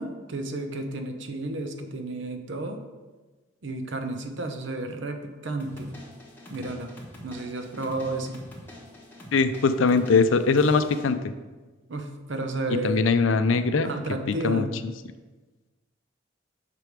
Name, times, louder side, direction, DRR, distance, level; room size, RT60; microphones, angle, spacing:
voice 1, 0.0-2.8 3.6-6.0 6.5-6.9 7.2-8.4 11.9-13.1 13.8-14.7, right 2 dB, 70° right, 6 dB, 0.8 m, -32 dB
sound 1, 5.6-11.1, left 1 dB, 10° left, 1.2 m, -45 dB
voice 2, 9.3-11.3 12.8-13.9 14.3-14.7, left 4 dB, 80° left, 11 dB, 0.5 m, -21 dB
6.8 x 5.0 x 4.6 m, 1.3 s
head